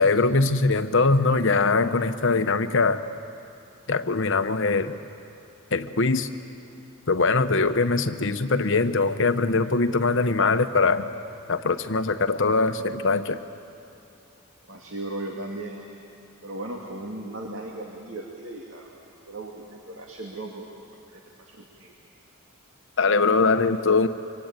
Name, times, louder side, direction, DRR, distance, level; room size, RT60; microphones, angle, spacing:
voice 1, 0.0-3.0 3.9-4.9 5.7-6.3 7.1-11.1 11.5-13.4 23.0-24.1, left 3 dB, 60° left, 9 dB, 1.0 m, -22 dB
voice 2, 14.7-15.8 16.4-18.9 19.3-20.7 21.1-21.9, right 2 dB, 60° right, 0 dB, 2.4 m, -37 dB
25.0 x 24.5 x 9.1 m, 2.7 s
head